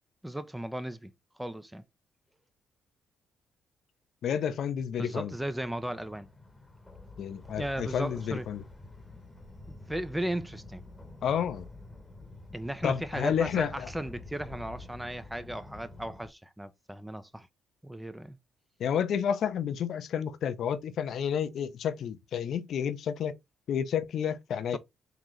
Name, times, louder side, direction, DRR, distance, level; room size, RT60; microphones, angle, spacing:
voice 1, 0.2-1.1 1.4-1.8 5.0-6.3 7.6-8.5 9.7-10.8 12.5-17.5 17.8-18.4, right 1 dB, 5° right, 0.4 m, -36 dB
voice 2, 4.2-5.3 7.2-8.6 11.2-11.7 12.8-13.9 18.8-23.3 23.7-24.8, left 8 dB, 70° left, 0.5 m, -30 dB
sound 1, 5.3-16.3, left 2 dB, 10° left, 1.0 m, -48 dB
3.8 x 2.9 x 3.1 m
cardioid pair, 90°, 0 cm